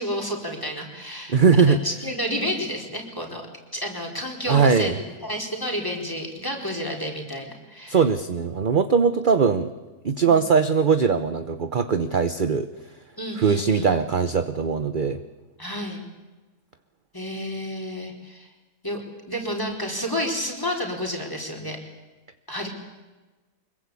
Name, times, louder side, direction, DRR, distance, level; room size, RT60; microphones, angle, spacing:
voice 1, 0.0-3.4 3.7-8.0 10.2-10.4 13.2-14.0 15.6-16.0 17.1-18.5 18.8-19.0 19.3-21.8 22.5-22.7, equal, 15° left, 1 dB, 4.5 m, -30 dB
voice 2, 1.3-1.8 4.5-5.0 7.9-9.7 10.0-12.7 13.4-15.2, right 5 dB, 40° right, 10 dB, 0.9 m, -20 dB
25.0 x 22.5 x 8.4 m, 1.2 s
omnidirectional pair, 1.7 m